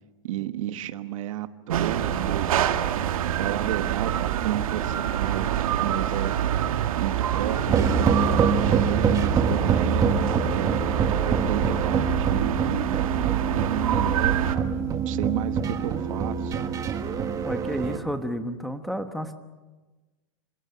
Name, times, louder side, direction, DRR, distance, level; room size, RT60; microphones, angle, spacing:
voice 1, 0.2-2.5 3.0-3.1 3.4-6.4 7.0-8.1 8.6-10.7 11.1-13.0 13.5-14.7 15.0-16.5, right 12 dB, 70° right, 10 dB, 1.3 m, -32 dB
sound 1, 1.7-14.6, right 10 dB, 85° right, 1.7 m, -26 dB
sound 2, 7.7-18.0, right 5 dB, 20° right, 1.4 m, -25 dB
voice 2, 17.4-19.4, equal, ahead, 6 dB, 1.2 m, -31 dB
27.5 x 26.0 x 5.8 m, 1.2 s
supercardioid pair, 155°, 18 cm